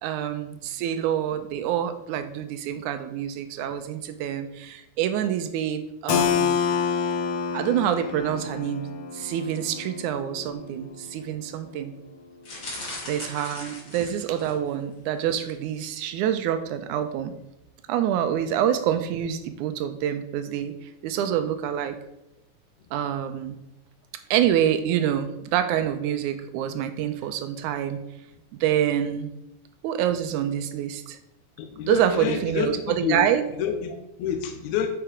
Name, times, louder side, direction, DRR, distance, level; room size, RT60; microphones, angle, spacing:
voice 1, 0.0-6.6 7.5-8.9 9.1-11.9 13.1-17.3 17.9-20.7 21.0-22.0 22.9-23.6 24.3-28.0 28.6-29.3 29.8-31.2 31.9-33.4, right 10 dB, 80° right, 9 dB, 2.0 m, -26 dB
Keyboard (musical), 6.1-11.6, left 7 dB, 90° left, 1.3 m, -28 dB
sound 1, 12.4-14.7 15.2-15.5 15.8-15.9, left 2 dB, 35° left, 2.5 m, -38 dB
voice 2, 31.6-33.3 33.6-34.9, left 8 dB, 75° left, 5 dB, 1.9 m, -28 dB
8.9 x 4.6 x 5.0 m, 0.87 s
omnidirectional pair, 3.8 m